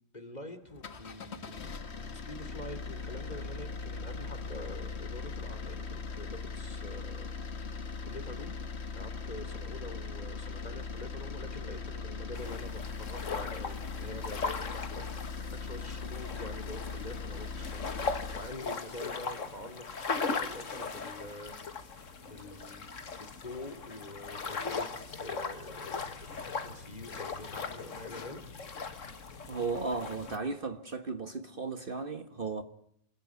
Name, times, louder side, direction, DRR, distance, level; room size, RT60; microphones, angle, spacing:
voice 1, 0.1-1.9 2.1-7.3 8.0-8.5 8.9-21.9 22.2-24.9 25.2-26.0 26.4-28.4, left 1 dB, 35° left, 3.1 m, -46 dB
sound 1, 0.7-18.6, left 4 dB, 55° left, 1.6 m, -40 dB
sound 2, 12.3-30.4, left 4 dB, 80° left, 2.0 m, -39 dB
voice 2, 29.5-32.6, right 4 dB, 45° right, 1.5 m, -35 dB
27.0 x 20.5 x 9.6 m
omnidirectional pair, 1.3 m